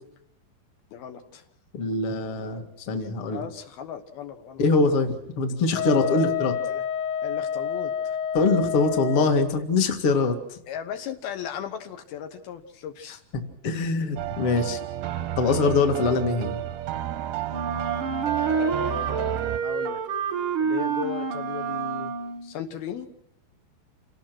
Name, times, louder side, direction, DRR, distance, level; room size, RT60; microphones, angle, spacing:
voice 1, 0.9-1.4 3.3-4.6 5.7-6.3 6.7-6.8 7.2-8.2 10.7-13.2 18.3-20.0 20.6-22.1 22.4-23.1, left 9 dB, 75° left, 6 dB, 3.2 m, -36 dB
voice 2, 1.7-3.5 4.6-6.5 8.3-10.6 13.1-14.8 15.4-16.6, left 3 dB, 40° left, 5 dB, 2.4 m, -23 dB
Wind instrument woodwind instrument, 5.7-9.4, left 8 dB, 60° left, 2.8 m, -29 dB
sound 1, 14.2-19.6, right 12 dB, 90° right, 3.0 m, -32 dB
Wind instrument woodwind instrument 2, 17.5-22.5, right 6 dB, 55° right, 1.6 m, -28 dB
28.0 x 18.5 x 6.1 m, 0.76 s
omnidirectional pair, 4.5 m